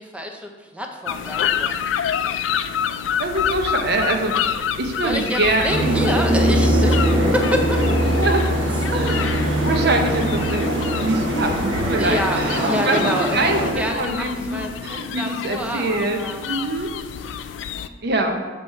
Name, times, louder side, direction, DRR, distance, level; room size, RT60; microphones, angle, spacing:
voice 1, 0.0-1.8 5.0-7.8 12.0-16.5, equal, 5° right, 2 dB, 0.6 m, -27 dB
sound 1, 1.1-17.9, left 8 dB, 80° left, 0.3 m, -28 dB
voice 2, 3.2-4.3 4.8-5.9 8.0-8.4 8.9-16.2 16.5-16.9 18.0-18.4, right 2 dB, 60° right, 4 dB, 0.8 m, -24 dB
sound 2, 5.7-13.7, right 1 dB, 85° right, 1.0 m, -21 dB
7.2 x 3.1 x 5.4 m, 1.4 s
head